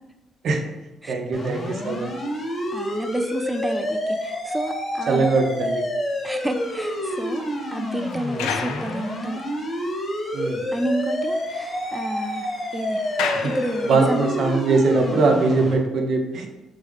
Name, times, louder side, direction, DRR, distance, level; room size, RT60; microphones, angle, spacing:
voice 1, 1.1-2.1 5.1-5.9 10.3-10.6 13.4-13.5 13.9-16.5, right 3 dB, 65° right, 4 dB, 0.6 m, -21 dB
sound 1, 1.3-15.7, equal, 45° left, 1.2 m, -28 dB
voice 2, 2.7-5.3 6.2-7.5 7.7-9.4 10.7-13.0 13.4-14.3, right 1 dB, 15° right, 6 dB, 0.3 m, -30 dB
sound 2, 6.3-9.7 10.3-10.4 10.7-10.8 11.1-14.3, left 6 dB, 90° left, 0.4 m, -35 dB
3.4 x 3.3 x 3.5 m, 1.0 s
supercardioid pair, 65°, 0 cm